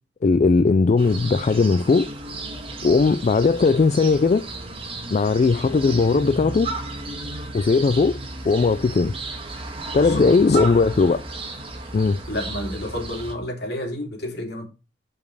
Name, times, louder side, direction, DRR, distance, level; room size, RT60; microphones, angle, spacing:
voice 1, 0.2-2.1 2.8-4.5 5.1-6.7 7.5-8.2 8.5-9.1 9.9-11.2 11.9-12.2, left 4 dB, 40° left, 0.3 m, -18 dB
sound 1, 1.0-13.3, right 2 dB, 30° right, 1.6 m, -34 dB
voice 2, 9.9-10.8 12.3-14.7, left 1 dB, 60° left, 2.9 m, -30 dB
7.0 x 5.4 x 4.7 m
head